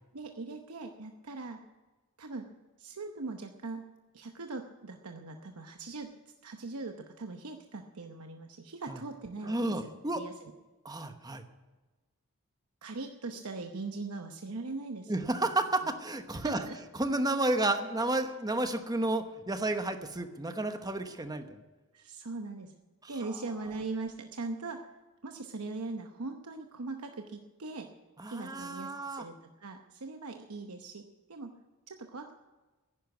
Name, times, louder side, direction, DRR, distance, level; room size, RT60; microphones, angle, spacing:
voice 1, 0.1-1.6 2.2-2.5 2.8-3.8 4.1-6.1 6.4-10.5 12.8-15.5 16.4-16.8 21.9-22.7 23.1-24.8 25.2-27.9 28.3-31.0 31.3-31.5 31.9-32.3, right 3 dB, 75° right, 5 dB, 0.9 m, -40 dB
voice 2, 9.4-10.2 10.8-11.4 15.1-16.7 16.9-21.6 23.0-23.1 28.2-29.2, right 2 dB, 15° right, 8 dB, 1.0 m, -31 dB
11.0 x 10.5 x 9.4 m, 1.2 s
head